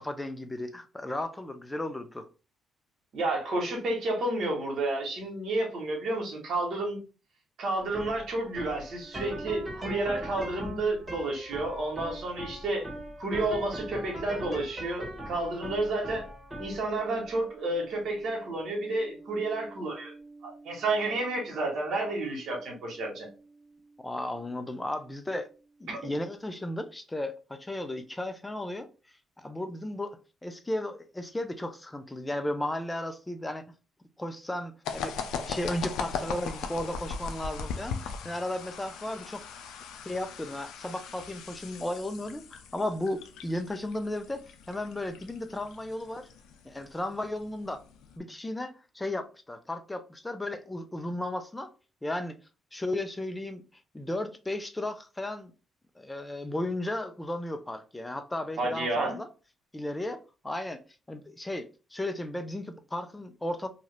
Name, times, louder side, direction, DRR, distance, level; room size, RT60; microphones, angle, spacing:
voice 1, 0.0-2.3 24.0-25.5 25.8-28.9 29.4-33.6 34.2-35.2 35.4-39.5 40.1-44.4 44.7-46.3 46.6-47.8 48.2-51.7 52.0-52.4 52.7-53.6 53.9-55.5 56.0-59.3 59.7-60.8 61.1-63.7, left 1 dB, 15° left, 0.5 m, -34 dB
voice 2, 3.1-7.0 7.6-12.9 13.2-16.3 16.6-20.1 20.4-23.3 25.9-26.0 58.6-59.2, right 2 dB, 70° right, 1.2 m, -31 dB
sound 1, 7.8-25.0, right 1 dB, 10° right, 1.3 m, -43 dB
sound 2, 34.8-48.2, left 5 dB, 90° left, 0.4 m, -39 dB
2.8 x 2.4 x 3.2 m
cardioid pair, 90°, 0 cm